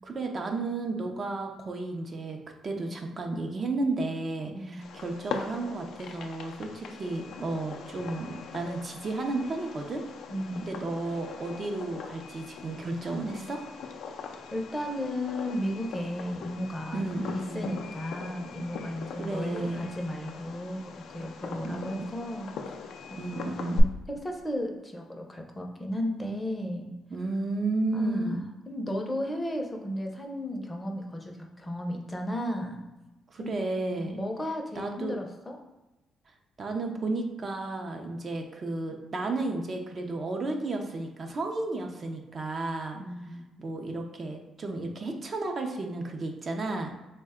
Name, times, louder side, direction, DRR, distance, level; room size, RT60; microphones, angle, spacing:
voice 1, 0.0-2.4 2.6-10.0 10.6-13.6 16.9-17.6 19.2-19.9 21.6-22.1 23.2-23.9 27.1-28.4 33.3-34.2 34.8-35.1 36.6-43.0 43.6-46.9, right 2 dB, 40° right, 3 dB, 0.5 m, -33 dB
voice 2, 4.6-4.9 10.3-10.7 14.5-22.7 23.3-26.9 27.9-32.8 33.4-33.6 34.0-35.6 42.9-43.5, equal, 15° left, 2 dB, 0.5 m, -34 dB
Fireworks, 4.8-23.8, left 5 dB, 75° left, 0.3 m, -40 dB
3.5 x 2.1 x 3.5 m, 1.0 s
cardioid pair, 90°, 0 cm